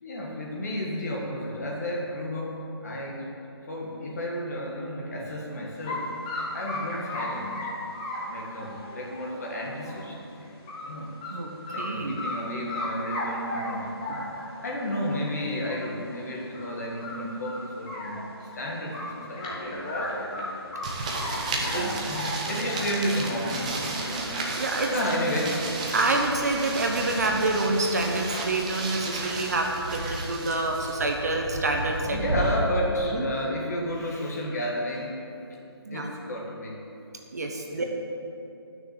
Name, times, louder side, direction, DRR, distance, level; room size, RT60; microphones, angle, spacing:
voice 1, 0.0-2.5 2.8-3.3 3.7-6.2 6.5-7.7 8.3-10.6 10.9-11.1 11.7-13.9 14.6-20.7 21.6-24.4 24.9-25.6 26.0-26.1 32.1-35.2 35.9-36.8 37.7-37.8, equal, 40° left, -1 dB, 1.8 m, -32 dB
sound 1, 5.9-6.0 6.3-10.1 10.4-10.9 11.2-11.3 11.7-12.4 12.7-14.6 15.3-15.4 15.7-15.8 16.1-16.2 16.5-16.8 17.0-18.5 18.9-21.4 21.6-23.5 23.9-24.6, left 2 dB, 15° left, 1.2 m, -35 dB
voice 2, 11.8-12.2 14.1-14.2 21.7-21.9 22.5-22.6 24.5-24.9 25.9-32.2 33.1-33.2 35.9-36.1 37.3-37.8, right 2 dB, 40° right, 2 dB, 0.9 m, -27 dB
sound 2, 20.8-32.5, right 2 dB, 15° right, 0.7 m, -33 dB
10.0 x 6.3 x 7.2 m, 2.7 s
hypercardioid pair, 170°, 14 cm